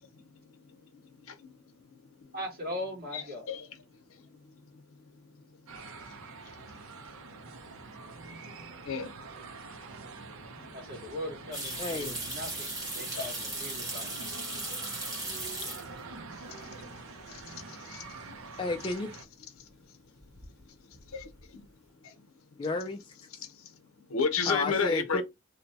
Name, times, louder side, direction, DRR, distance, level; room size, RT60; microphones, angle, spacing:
voice 1, 0.1-1.9 3.1-3.7 4.1-4.8 5.2-5.7 6.1-6.2 6.4-6.8 8.4-9.1 10.3-10.8 11.6-11.7 13.1-13.6 13.9-14.0 15.6-15.8 16.5-16.8 17.3-18.3 19.6-19.7 20.7-20.8 21.1-21.6 22.0-22.1 23.4-23.8 24.1-25.2, left 5 dB, 85° left, 0.7 m, -36 dB
voice 2, 2.3-3.5 10.7-14.2, left 1 dB, 45° right, 1.4 m, -40 dB
sound 1, 5.7-19.3, right 4 dB, 80° right, 0.6 m, -46 dB
sound 2, 11.5-16.2 16.5-17.1 17.4-17.5 20.2-20.6 20.9-21.4, right 2 dB, 15° right, 1.3 m, -37 dB
voice 3, 11.8-12.2 18.6-19.1 22.6-23.0 24.5-25.2, left 2 dB, 25° left, 0.3 m, -31 dB
2.7 x 2.1 x 4.0 m
head